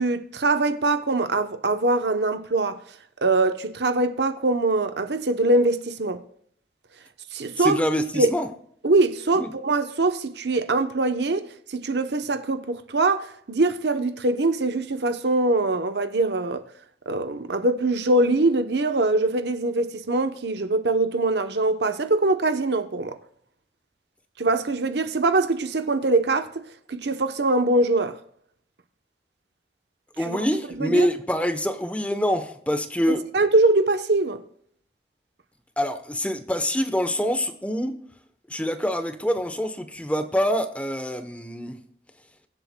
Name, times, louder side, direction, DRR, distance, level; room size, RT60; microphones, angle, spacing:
voice 1, 0.0-2.8 3.2-6.2 7.3-7.8 8.1-8.3 8.8-16.6 17.1-23.2 24.4-26.6 26.9-28.2 30.3-30.4 30.7-31.1 33.1-34.4, right 2 dB, 70° right, 0.8 m, -23 dB
voice 2, 7.6-8.5 9.4-9.5 30.2-33.3 35.8-38.0 38.5-41.8, equal, 10° left, 0.8 m, -25 dB
23.0 x 7.8 x 2.2 m
head